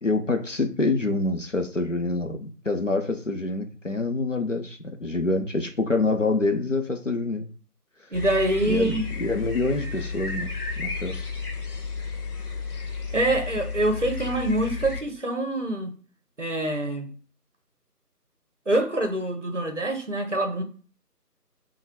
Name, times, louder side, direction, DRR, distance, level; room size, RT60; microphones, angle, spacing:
voice 1, 0.0-7.5 8.6-10.5 10.8-11.2, left 3 dB, 50° left, 0.7 m, -26 dB
sound 1, 8.1-15.0, left 4 dB, 65° left, 1.1 m, -32 dB
voice 2, 8.1-9.0 13.1-15.9 16.4-17.1 18.7-20.6, right 1 dB, 50° right, 0.8 m, -25 dB
5.4 x 2.3 x 3.5 m
figure-of-eight pair, 165°, 49 cm